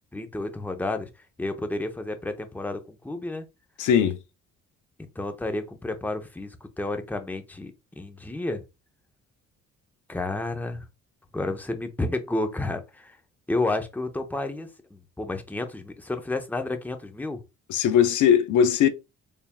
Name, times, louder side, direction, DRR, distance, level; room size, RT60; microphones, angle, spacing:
voice 1, 0.1-1.1 1.4-3.4 5.0-8.6 10.1-10.9 11.3-13.2 13.5-17.4, left 2 dB, 5° left, 0.7 m, -31 dB
voice 2, 3.8-4.2 17.7-18.9, left 8 dB, 75° left, 0.6 m, -19 dB
4.1 x 3.5 x 2.2 m
cardioid pair, 90°, 30 cm